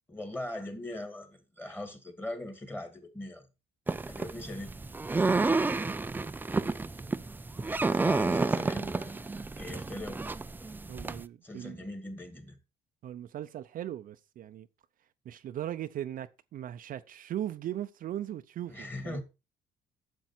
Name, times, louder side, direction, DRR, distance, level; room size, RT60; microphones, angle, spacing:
voice 1, 0.1-3.5 4.1-4.7 7.9-9.1 9.6-10.2 11.4-12.6 18.7-19.2, left 1 dB, 10° left, 2.1 m, -40 dB
sound 1, 3.9-11.2, right 3 dB, 10° right, 0.4 m, -30 dB
voice 2, 10.9-11.8 13.0-14.7 15.3-19.2, right 11 dB, 55° right, 0.6 m, -38 dB
9.1 x 7.0 x 4.4 m
cardioid pair, 110°, 17 cm